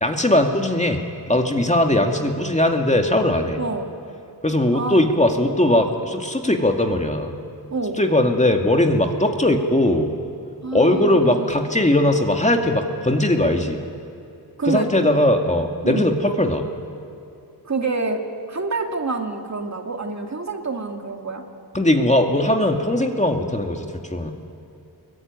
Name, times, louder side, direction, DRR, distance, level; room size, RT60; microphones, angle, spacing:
voice 1, 0.0-1.0 1.3-3.6 4.4-7.3 8.0-10.1 10.7-13.8 14.6-16.6 21.7-24.3, left 1 dB, 20° left, 3 dB, 2.2 m, -19 dB
voice 2, 3.6-3.9 4.7-5.1 7.7-8.0 10.6-11.5 14.6-14.9 15.8-16.1 17.6-18.2 18.5-21.4, right 3 dB, 45° right, 3 dB, 2.4 m, -27 dB
26.0 x 22.5 x 9.6 m, 2.7 s
wide cardioid pair, 100°, 39 cm